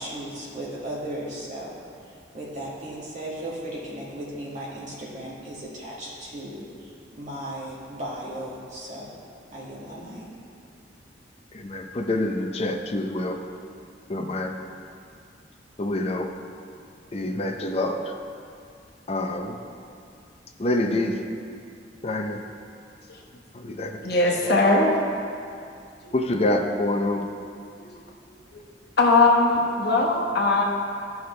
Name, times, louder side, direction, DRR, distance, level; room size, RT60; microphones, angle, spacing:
voice 1, 0.0-1.7 2.0-9.1 9.5-10.3, right 1 dB, 45° right, -7 dB, 1.9 m, -36 dB
voice 2, 11.5-13.4 14.1-14.5 15.8-16.3 17.1-18.0 19.1-19.6 20.6-21.2 22.0-22.4 23.5-24.0 26.1-27.2, left 1 dB, 35° left, 4 dB, 0.6 m, -26 dB
voice 3, 24.0-25.0 27.8-27.9 29.0-30.6, left 2 dB, 60° left, -1 dB, 1.2 m, -20 dB
12.5 x 5.8 x 3.3 m, 2.4 s
head